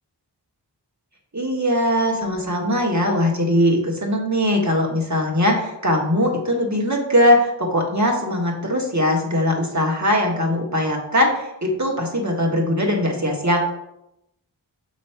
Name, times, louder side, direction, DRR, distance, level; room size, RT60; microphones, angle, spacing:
voice 1, 1.3-13.7, left 1 dB, 40° right, 0 dB, 1.6 m, -20 dB
6.8 x 3.2 x 5.7 m, 0.85 s
wide cardioid pair, 40°, 42 cm